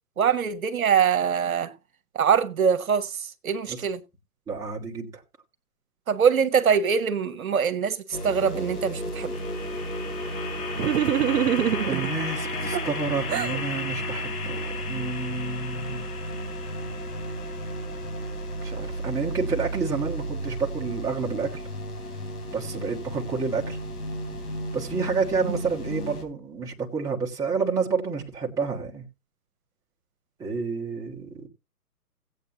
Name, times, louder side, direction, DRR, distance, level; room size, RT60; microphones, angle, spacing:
voice 1, 0.2-1.7 2.1-4.0 6.1-8.0 8.2-9.3 25.5-25.6, right 7 dB, 60° right, 1.2 m, -23 dB
voice 2, 4.5-5.2 11.8-16.0 18.6-21.7 22.5-23.8 24.7-29.0 30.4-31.5, right 5 dB, 5° right, 1.2 m, -29 dB
sound 1, 8.1-26.2, equal, 65° left, 3.9 m, -32 dB
sound 2, 10.8-12.1 12.7-13.6, right 10 dB, 75° right, 0.7 m, -24 dB
17.0 x 8.3 x 2.8 m
figure-of-eight pair, 135°, 47 cm